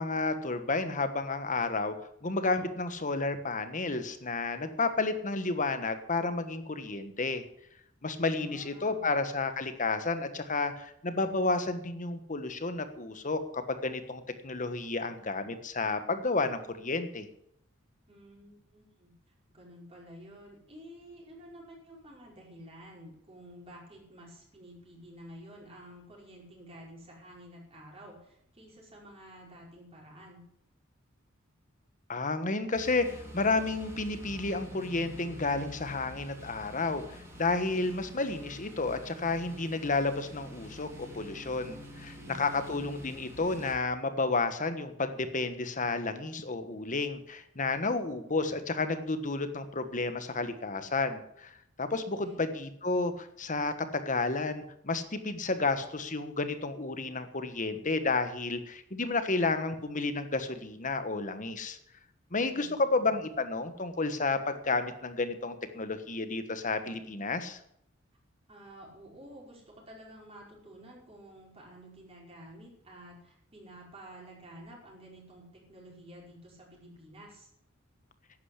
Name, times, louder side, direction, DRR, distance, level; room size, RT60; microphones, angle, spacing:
voice 1, 0.0-1.9 2.2-7.4 8.0-17.3 32.1-51.5 51.8-61.8 62.3-67.6, left 3 dB, 40° left, 9 dB, 1.4 m, -31 dB
voice 2, 8.3-9.1 18.1-19.1 19.5-30.4 42.1-42.8 52.0-52.4 62.5-63.1 68.5-77.5, equal, 30° right, -3 dB, 5.2 m, -51 dB
sound 1, 32.7-43.7, left 1 dB, 15° right, 3.4 m, -47 dB
11.5 x 9.5 x 8.2 m, 0.74 s
head